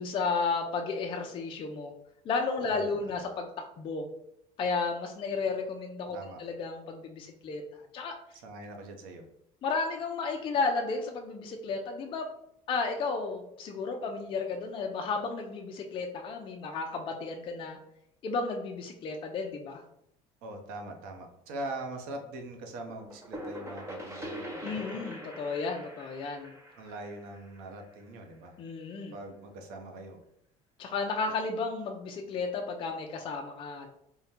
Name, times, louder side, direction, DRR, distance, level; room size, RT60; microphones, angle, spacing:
voice 1, 0.0-1.9 2.2-3.5 3.8-4.1 4.6-8.1 9.6-12.2 12.7-17.8 18.2-19.8 24.6-26.6 28.6-29.1 30.8-33.9, left 4 dB, 35° left, 2 dB, 0.4 m, -33 dB
voice 2, 2.6-3.2 6.1-6.4 8.3-9.2 20.4-24.7 26.8-28.5 29.1-30.2, right 2 dB, 75° right, 3 dB, 0.8 m, -42 dB
sound 1, 22.9-28.5, equal, 15° right, 0.9 m, -43 dB
3.7 x 2.2 x 4.2 m, 0.77 s
cardioid pair, 135°, 15 cm